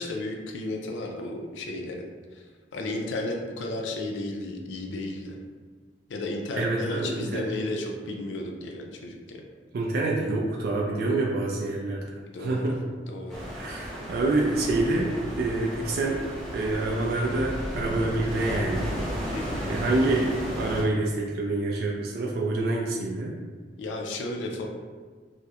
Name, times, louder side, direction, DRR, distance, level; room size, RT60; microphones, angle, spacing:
voice 1, 0.0-2.0 2.7-5.3 6.1-9.4 12.3-12.6 13.1-13.4 19.3-19.8 23.8-24.7, left 2 dB, 80° left, 2 dB, 0.4 m, -33 dB
voice 2, 6.6-7.4 9.7-12.0 12.4-12.8 13.6-16.2 16.5-18.9 19.6-23.3, right 2 dB, 55° right, -2 dB, 0.3 m, -27 dB
sound 1, 13.3-20.8, equal, ahead, 0.5 m, -34 dB
2.3 x 2.0 x 2.8 m, 1.5 s
head